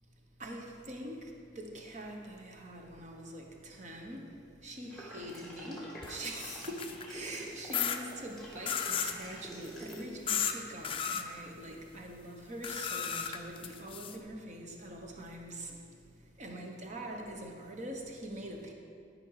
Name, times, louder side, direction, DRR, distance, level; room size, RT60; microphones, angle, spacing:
voice 1, 0.4-18.7, right 1 dB, 40° right, 2 dB, 1.0 m, -44 dB
sound 1, 4.9-10.0, right 1 dB, ahead, 1.6 m, -47 dB
sound 2, 6.0-7.1 7.7-8.0 8.7-9.2 10.3-10.5 10.8-11.2 12.6-14.2, left 8 dB, 30° left, 0.4 m, -34 dB
12.5 x 5.3 x 4.8 m, 2.3 s
head